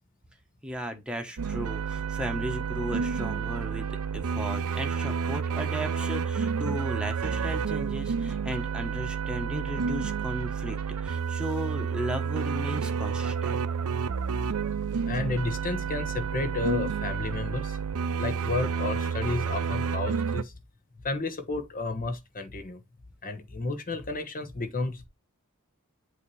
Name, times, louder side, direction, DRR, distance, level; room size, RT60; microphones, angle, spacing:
voice 1, 0.6-13.6, equal, 5° right, 1.2 m, -35 dB
sound 1, 1.4-20.4, right 6 dB, 85° right, 0.6 m, -30 dB
voice 2, 13.8-14.3 15.1-17.8 18.2-20.5 21.0-22.8 23.2-25.1, left 3 dB, 40° left, 1.1 m, -32 dB
8.1 x 2.9 x 4.8 m
head